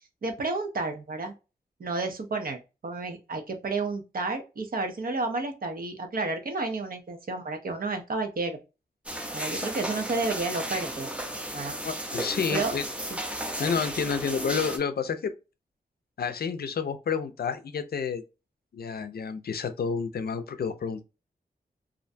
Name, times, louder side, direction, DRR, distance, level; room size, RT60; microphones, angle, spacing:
voice 1, 0.2-1.3 1.8-8.6 9.3-11.1 11.5-11.8 12.5-12.7 13.0-13.2, right 3 dB, 60° right, 0.6 m, -31 dB
sound 1, 9.1-14.8, right 1 dB, 5° right, 0.5 m, -34 dB
voice 2, 11.8-12.8 13.6-15.3 16.2-18.2 18.7-21.0, left 6 dB, 70° left, 0.4 m, -30 dB
2.5 x 2.1 x 2.5 m
wide cardioid pair, 120°, 17 cm